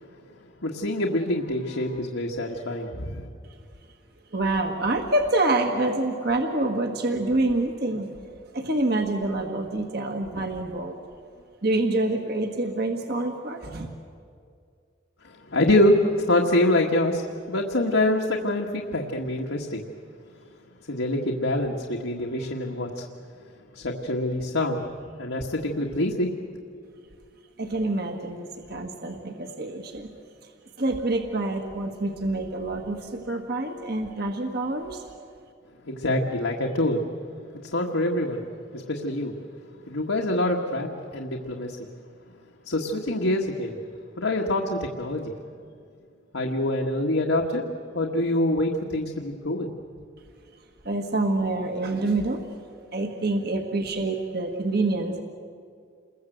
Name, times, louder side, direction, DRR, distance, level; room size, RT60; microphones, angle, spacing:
voice 1, 0.6-3.3 15.2-16.0 16.3-19.8 20.9-23.0 23.7-24.8 25.2-26.3 35.9-37.0 37.7-38.4 38.7-39.3 39.9-41.8 42.6-43.8 44.2-45.3 46.3-47.6 47.9-49.7, left 1 dB, 85° left, -1 dB, 1.7 m, -25 dB
voice 2, 4.3-8.1 8.5-10.9 11.6-13.9 27.6-30.1 30.8-35.0 50.8-52.4 52.9-55.2, right 2 dB, 55° right, 3 dB, 1.5 m, -26 dB
28.5 x 21.5 x 8.0 m, 2.3 s
head